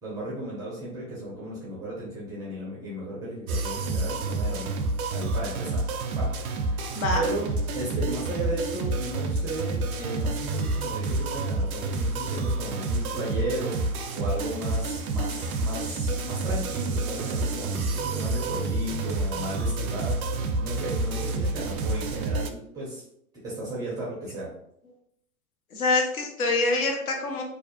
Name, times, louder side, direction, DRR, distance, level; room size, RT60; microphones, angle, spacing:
voice 1, 0.0-4.7 5.1-5.8 6.1-6.3 6.6-6.8 7.1-7.5 7.7-23.0 23.4-24.5, right 1 dB, 10° right, -6 dB, 0.4 m, -35 dB
sound 1, 3.5-22.5, right 2 dB, 75° right, 0.5 m, -29 dB
voice 2, 25.7-27.4, left 3 dB, 75° left, 2 dB, 0.9 m, -25 dB
2.5 x 2.0 x 2.8 m, 0.70 s
figure-of-eight pair, 105°, 43 cm